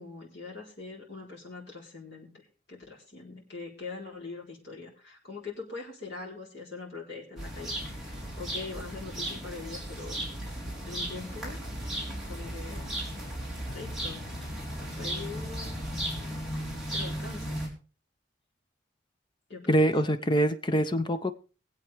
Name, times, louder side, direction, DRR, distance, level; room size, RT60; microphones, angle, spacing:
voice 1, 0.0-2.3 2.7-10.2 10.9-11.6 12.3-13.0 13.7-14.4 14.8-15.8 16.9-17.6 19.5-19.8, left 4 dB, 60° left, -4 dB, 4.2 m, -42 dB
sound 1, 7.4-17.7, equal, ahead, 4.0 m, -36 dB
voice 2, 19.7-21.3, right 1 dB, 25° left, 10 dB, 0.7 m, -24 dB
23.0 x 8.1 x 3.5 m, 0.37 s
head